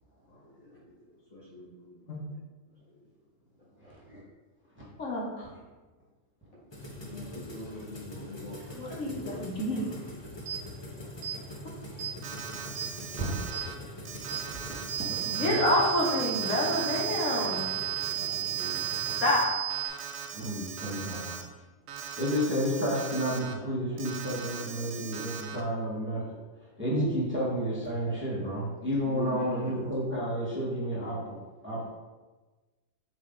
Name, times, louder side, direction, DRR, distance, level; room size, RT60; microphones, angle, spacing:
voice 1, 0.3-0.7 1.3-2.0 2.3-2.4 3.8-4.0 6.9-8.6 8.8-9.9 18.1-18.8 29.0-29.5, left 2 dB, 80° left, -6 dB, 2.3 m, -44 dB
voice 2, 5.0-5.5 8.7-9.9 15.3-17.7 19.2-19.6, left 1 dB, 65° left, -4 dB, 1.8 m, -28 dB
sound 1, 6.7-19.4, left 1 dB, 20° left, 0.9 m, -43 dB
voice 3, 9.1-9.7 13.2-13.9 15.1-15.6 20.3-21.4 22.2-26.2 26.8-31.4 31.6-31.8, equal, 10° right, -8 dB, 1.6 m, -31 dB
sound 2, 10.5-10.6 11.2-11.4 12.0-12.2 12.8-12.9 13.5-13.7 14.3-14.4 14.9-19.9, right 12 dB, 65° right, 1.4 m, -33 dB
Alarm, 12.2-13.7 14.1-19.4 19.7-21.4 21.9-23.5 24.0-25.6, right 6 dB, 80° right, 1.1 m, -41 dB
7.6 x 3.3 x 3.9 m, 1.2 s
omnidirectional pair, 1.4 m